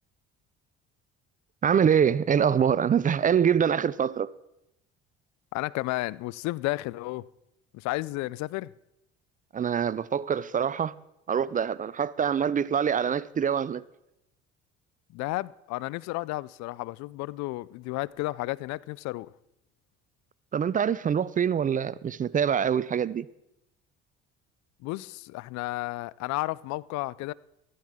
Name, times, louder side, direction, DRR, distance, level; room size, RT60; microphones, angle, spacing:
voice 1, 1.6-4.3 9.5-10.9 11.3-13.8 20.5-23.3, right 8 dB, 30° right, 0.4 m, -25 dB
voice 2, 5.5-7.3 7.7-8.7 15.1-19.3 24.8-27.3, left 20 dB, 70° left, 0.4 m, -32 dB
13.5 x 13.5 x 3.7 m
supercardioid pair, 75°, 29 cm